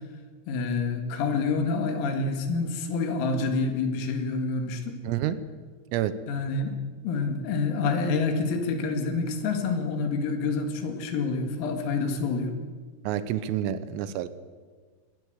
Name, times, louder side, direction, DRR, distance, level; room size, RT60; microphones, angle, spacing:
voice 1, 0.5-5.0 6.3-6.8 7.0-12.5, left 4 dB, 85° left, 6 dB, 4.8 m, -27 dB
voice 2, 5.0-5.4 5.9-6.1 13.1-14.3, right 11 dB, 90° right, 13 dB, 3.6 m, -28 dB
21.5 x 19.5 x 8.2 m, 1.5 s
omnidirectional pair, 5.9 m